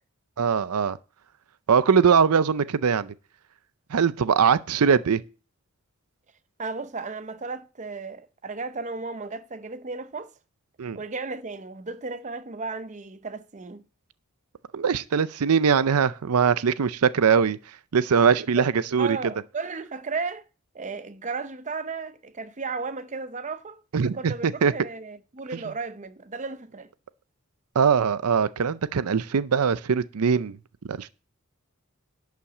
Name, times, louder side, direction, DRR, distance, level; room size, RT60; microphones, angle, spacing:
voice 1, 0.4-1.0 1.7-3.1 3.9-5.2 10.8-11.0 14.7-17.6 17.9-19.2 23.9-24.7 27.8-30.6 30.9-31.1, right 6 dB, 80° right, 0.5 m, -21 dB
voice 2, 6.6-10.3 10.9-13.8 18.6-18.7 19.0-20.4 20.7-26.9, right 4 dB, 35° right, 0.7 m, -34 dB
11.5 x 5.7 x 7.2 m
head